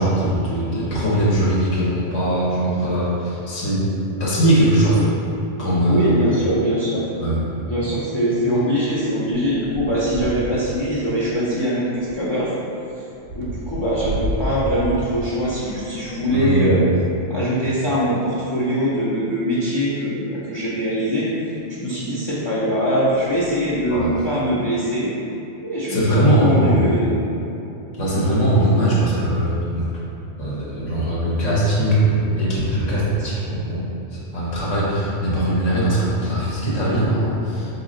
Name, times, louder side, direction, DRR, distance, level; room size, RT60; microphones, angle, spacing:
voice 1, 0.0-3.9 4.2-5.1 5.6-6.2 7.2-7.4 16.1-16.8 23.8-24.1 25.9-26.8 28.0-29.8 30.4-33.8 34.3-37.7, right 1 dB, 85° left, -7 dB, 1.3 m, -20 dB
voice 2, 5.9-7.1 7.6-12.5 13.3-16.9 17.3-21.3 21.7-25.1 25.6-27.2, equal, 40° left, -9 dB, 0.4 m, -22 dB
sound 1, 6.7-6.9 7.2-16.6 17.4-18.7 19.4-19.5 19.7-19.8 21.5-21.6 22.3-22.6 22.9-24.2, equal, 60° right, 0.7 m, -34 dB
4.1 x 2.8 x 3.7 m, 2.8 s
omnidirectional pair, 1.2 m